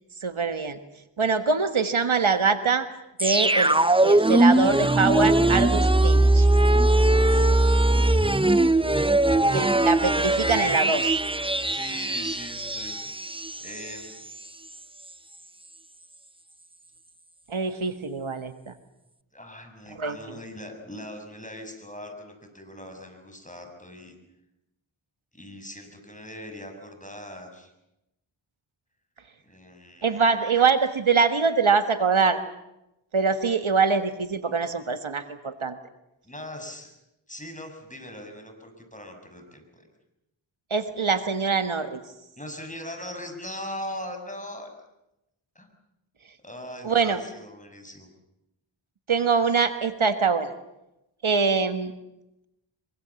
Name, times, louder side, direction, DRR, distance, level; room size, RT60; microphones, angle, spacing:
voice 1, 0.2-0.8 1.2-2.9 3.2-6.5 9.5-11.2 17.5-18.7 20.0-20.4 30.0-32.4 33.1-35.7 40.7-42.0 46.8-47.2 49.1-50.5 51.2-51.9, right 5 dB, 70° right, 10 dB, 1.6 m, -24 dB
sound 1, 3.2-14.0 14.3-14.4, right 2 dB, 10° right, 0.8 m, -21 dB
voice 2, 11.7-13.0 13.6-14.3 19.3-24.1 25.3-27.7 29.4-30.2 36.2-36.9 37.3-39.9 42.4-44.7 45.5-45.7 46.4-48.1, left 1 dB, 15° left, 4 dB, 6.6 m, -40 dB
24.5 x 24.0 x 7.2 m, 0.89 s
wide cardioid pair, 45°, 50 cm